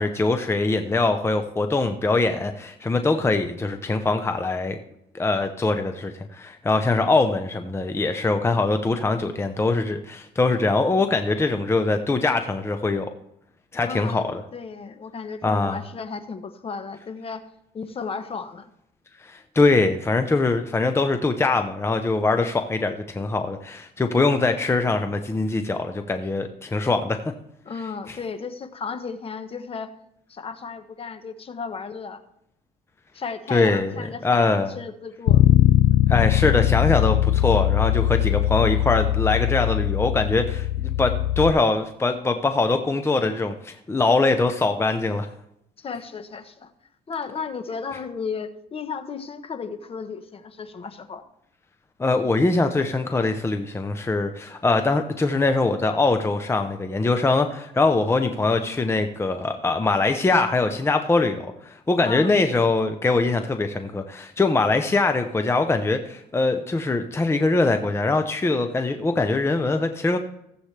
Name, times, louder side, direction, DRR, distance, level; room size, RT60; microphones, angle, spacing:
voice 1, 0.0-4.8 5.1-13.1 13.7-14.3 15.4-15.8 19.2-27.2 28.1-28.2 33.5-33.9 34.2-34.7 36.1-45.3 52.0-70.2, left 3 dB, 15° left, 7 dB, 0.7 m, -22 dB
voice 2, 13.9-17.4 17.7-18.7 27.6-29.9 30.3-32.2 33.1-35.5 45.8-46.7 47.1-51.2 62.0-62.4, left 5 dB, 35° left, 10 dB, 1.0 m, -34 dB
Bass guitar, 35.3-41.5, left 12 dB, 70° left, 0.5 m, -20 dB
16.0 x 8.1 x 3.3 m, 0.77 s
cardioid pair, 110°, 17 cm